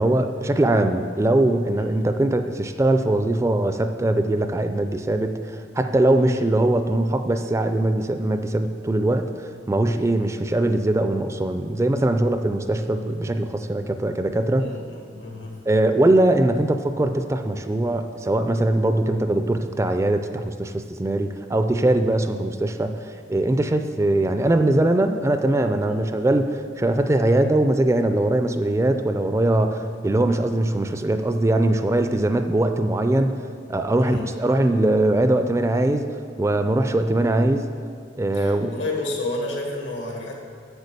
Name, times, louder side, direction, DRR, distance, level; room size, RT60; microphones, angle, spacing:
voice 1, 0.0-14.7 15.7-33.4 33.7-37.7 38.2-38.7, right 1 dB, 15° right, 8 dB, 0.3 m, -21 dB
voice 2, 14.6-15.7 25.8-26.0 34.0-34.3 38.3-40.3, left 2 dB, 85° left, 0 dB, 1.7 m, -31 dB
8.2 x 6.8 x 6.7 m, 2.2 s
head